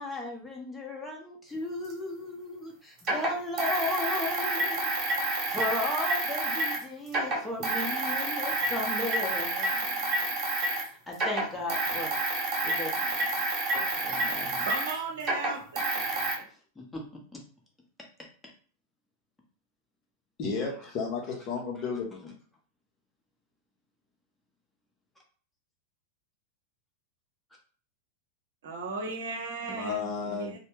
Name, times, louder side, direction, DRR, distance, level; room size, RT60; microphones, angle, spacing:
voice 1, 0.0-4.9 5.5-10.3 11.1-12.1 12.6-13.4 14.0-14.7 16.9-17.0, left 2 dB, 10° left, -1 dB, 0.9 m, -35 dB
sound 1, 1.9-2.0 3.0-6.8 7.1-10.9 11.1-16.3, right 2 dB, 35° right, 1.2 m, -29 dB
voice 2, 14.6-15.6 28.6-30.6, right 4 dB, 60° right, 1 dB, 0.8 m, -36 dB
voice 3, 20.4-22.3 29.8-30.6, left 4 dB, 35° left, 1 dB, 0.8 m, -33 dB
3.2 x 2.1 x 3.0 m, 0.42 s
figure-of-eight pair, 90°, 0 cm